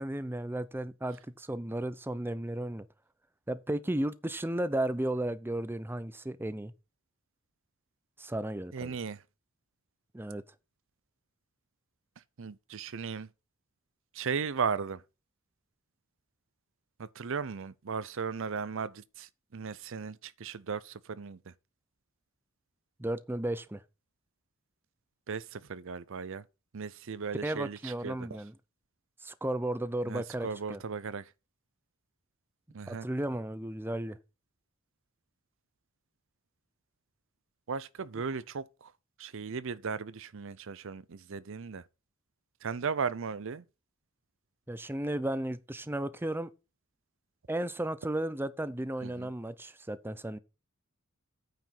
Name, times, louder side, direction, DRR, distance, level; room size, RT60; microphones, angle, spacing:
voice 1, 0.0-2.9 3.5-6.7 8.2-9.0 10.1-10.4 23.0-23.8 27.4-28.5 29.2-30.8 32.9-34.2 44.7-46.5 47.5-50.4, right 1 dB, 10° right, 0.6 m, -34 dB
voice 2, 8.7-9.2 12.4-13.3 14.1-15.0 17.0-21.5 25.3-26.4 26.7-28.3 30.1-31.3 32.7-33.1 37.7-38.9 39.2-41.8 42.6-43.6 49.0-49.3, right 5 dB, 65° right, 0.6 m, -36 dB
9.2 x 5.1 x 5.9 m
head